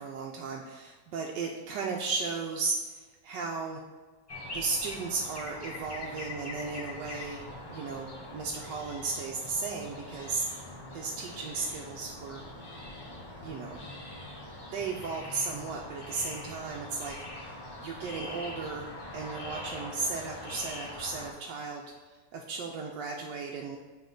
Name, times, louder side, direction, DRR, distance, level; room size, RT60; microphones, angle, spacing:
voice 1, 0.0-3.8 4.5-10.5 10.9-12.4 13.4-13.8 14.7-23.8, right 4 dB, 85° right, 0 dB, 1.2 m, -35 dB
sound 1, 4.3-21.3, left 2 dB, 35° left, 0.4 m, -43 dB
8.8 x 3.0 x 3.8 m, 1.4 s
omnidirectional pair, 1.9 m